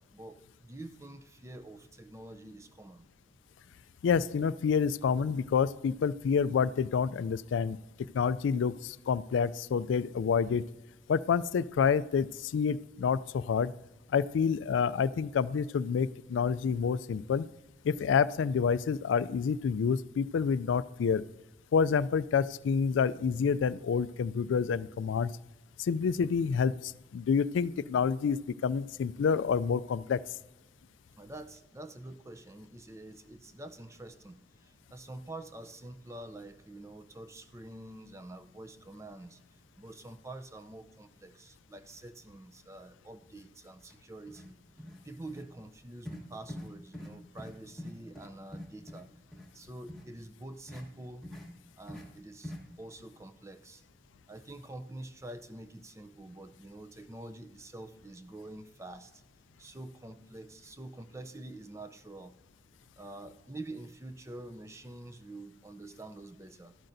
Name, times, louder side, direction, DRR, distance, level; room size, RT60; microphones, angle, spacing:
voice 1, 0.0-3.1 31.2-44.6 45.0-49.1 49.5-51.3 51.8-53.8 54.3-59.2 59.6-62.4 63.0-66.8, right 2 dB, 15° right, 11 dB, 0.4 m, -47 dB
voice 2, 4.0-7.8 8.1-10.6 11.1-13.7 14.1-17.5 17.8-21.2 21.7-25.3 25.8-30.2, left 6 dB, 85° left, 17 dB, 0.3 m, -28 dB
sound 1, 43.8-43.9 44.3-44.5 44.8-45.0 45.3-45.4 46.0-46.2 46.5-46.7 46.9-47.1 47.4-47.5 47.8-49.0 49.3-49.5 49.9-50.0 50.7-50.8 51.2-51.5 51.9-52.0 52.4-52.6, left 1 dB, ahead, 1.3 m, -43 dB
12.5 x 11.5 x 2.6 m, 0.97 s
head